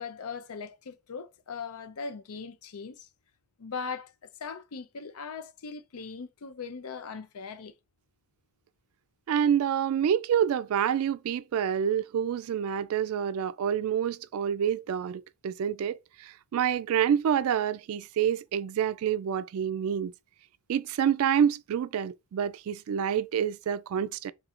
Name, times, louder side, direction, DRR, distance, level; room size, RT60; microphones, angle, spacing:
voice 1, 0.0-3.1 3.6-4.1 4.4-7.7, left 5 dB, 85° left, 0.5 m, -39 dB
voice 2, 9.3-20.1 20.7-24.3, right 8 dB, 75° right, 0.3 m, -27 dB
3.7 x 2.4 x 4.2 m
head